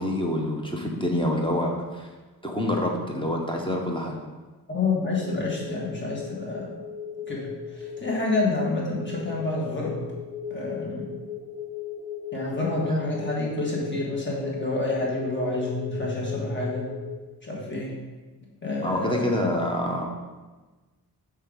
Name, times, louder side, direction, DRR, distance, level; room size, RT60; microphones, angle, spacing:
voice 1, 0.0-2.1 2.4-4.2 18.8-20.1, left 1 dB, 15° left, 0 dB, 0.8 m, -26 dB
voice 2, 4.7-6.7 7.3-10.0 10.5-11.1 12.3-16.9 17.4-17.9 18.6-19.4, left 2 dB, 30° left, -4 dB, 1.7 m, -28 dB
sound 1, 5.1-17.1, left 7 dB, 20° right, 1.6 m, -38 dB
6.5 x 3.4 x 5.1 m, 1.3 s
wide cardioid pair, 125°, 39 cm